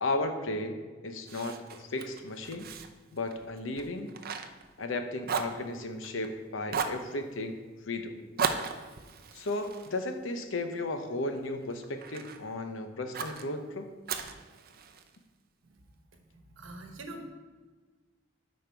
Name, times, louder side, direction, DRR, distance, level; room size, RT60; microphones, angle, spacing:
voice 1, 0.0-2.7 3.1-4.1 4.8-8.2 9.3-13.9, left 2 dB, 85° left, 7 dB, 0.8 m, -35 dB
Fire, 1.3-5.0 5.2-6.3 6.7-7.1 8.4-10.8 11.3-12.4 13.1-13.5 14.1-15.2, right 5 dB, 50° right, 0.6 m, -36 dB
voice 2, 16.5-17.3, right 1 dB, 85° right, 4 dB, 1.1 m, -43 dB
9.0 x 5.2 x 4.6 m, 1.3 s
head